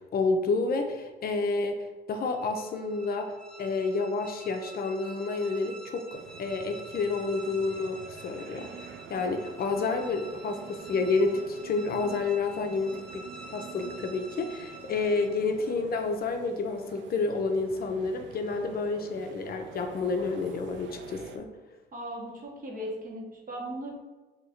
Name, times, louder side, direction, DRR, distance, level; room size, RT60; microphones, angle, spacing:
voice 1, 0.1-3.3 3.6-8.7 9.1-21.5, left 3 dB, 50° left, 5 dB, 0.5 m, -29 dB
sound 1, 2.2-15.6, right 2 dB, 5° left, 0.5 m, -48 dB
sound 2, 6.1-21.4, right 6 dB, 70° right, 0.4 m, -47 dB
voice 2, 21.9-23.9, right 1 dB, 45° right, -2 dB, 1.1 m, -37 dB
2.8 x 2.6 x 4.2 m, 1.2 s
cardioid pair, 90°, 20 cm